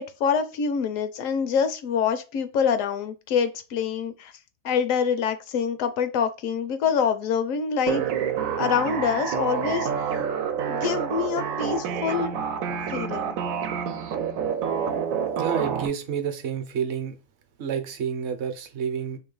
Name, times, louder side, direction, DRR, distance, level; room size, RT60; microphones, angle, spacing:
voice 1, 0.0-4.3 4.6-8.0 8.6-9.9 10.7-12.3 12.9-13.4, left 7 dB, 75° left, 1.0 m, -25 dB
sound 1, 7.9-15.9, right 7 dB, 90° right, 1.0 m, -28 dB
voice 2, 15.4-17.2 17.6-19.2, right 7 dB, 60° right, 0.9 m, -29 dB
3.1 x 2.9 x 3.8 m
omnidirectional pair, 1.4 m